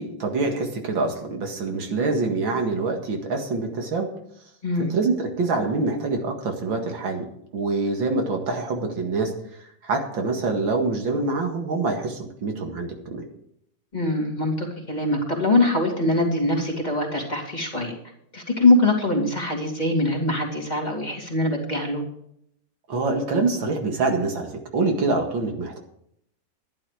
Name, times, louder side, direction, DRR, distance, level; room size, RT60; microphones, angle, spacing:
voice 1, 0.0-4.1 4.8-7.3 7.5-9.3 9.8-13.2 22.9-25.8, right 3 dB, 90° right, 3 dB, 2.7 m, -25 dB
voice 2, 13.9-18.0 18.3-22.0, left 2 dB, 20° left, 0 dB, 2.7 m, -23 dB
12.0 x 11.0 x 5.0 m, 0.71 s
omnidirectional pair, 2.1 m